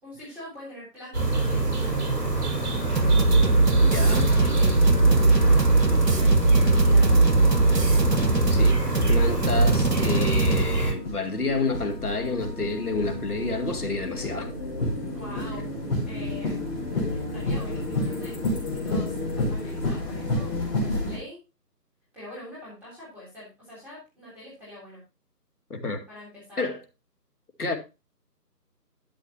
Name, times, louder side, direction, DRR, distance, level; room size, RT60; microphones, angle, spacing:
voice 1, 0.0-3.1 3.9-4.8 5.1-7.3 15.1-15.6 16.0-16.6 16.9-20.5 20.8-21.4 22.1-25.0 26.1-26.6, left 1 dB, 5° right, 3.3 m, -44 dB
sound 1, 1.1-10.9, right 3 dB, 65° right, 4.3 m, -25 dB
sound 2, 3.0-10.6, right 2 dB, 80° right, 1.6 m, -20 dB
voice 2, 3.8-4.4 8.5-8.8 9.1-14.5 18.7-18.8 25.7-26.0 26.6-26.8 27.6-27.8, left 3 dB, 65° left, 2.3 m, -29 dB
sound 3, 7.5-21.2, left 2 dB, 35° left, 5.1 m, -31 dB
12.5 x 7.3 x 2.8 m
figure-of-eight pair, 160°, 49 cm